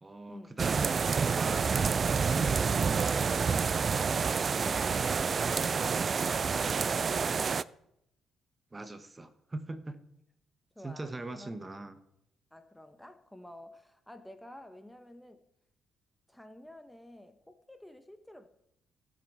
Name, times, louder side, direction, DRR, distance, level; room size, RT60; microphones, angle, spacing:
voice 1, 0.0-3.7 8.7-10.0 10.8-12.0, right 2 dB, 20° right, 11 dB, 1.1 m, -41 dB
sound 1, 0.6-7.6, right 5 dB, 40° right, 0.4 m, -28 dB
voice 2, 3.6-7.3 10.8-11.5 12.5-15.4 16.3-18.5, left 1 dB, 5° left, 9 dB, 1.0 m, -51 dB
15.5 x 7.9 x 5.5 m, 0.78 s
cardioid pair, 90°, 0 cm